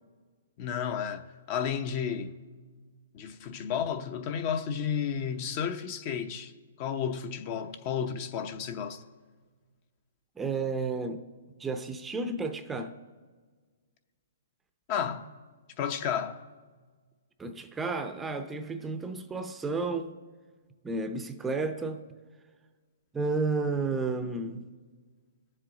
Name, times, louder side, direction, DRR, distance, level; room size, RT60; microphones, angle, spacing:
voice 1, 0.6-2.3 3.1-6.5 6.8-9.0 14.9-15.3 15.8-16.4, left 7 dB, 35° left, 0.7 m, -32 dB
voice 2, 10.4-11.2 11.6-12.9 17.4-20.2 20.8-22.0 23.1-24.7, right 3 dB, 10° right, 0.6 m, -32 dB
21.0 x 7.5 x 3.9 m
hypercardioid pair, 150°, 0 cm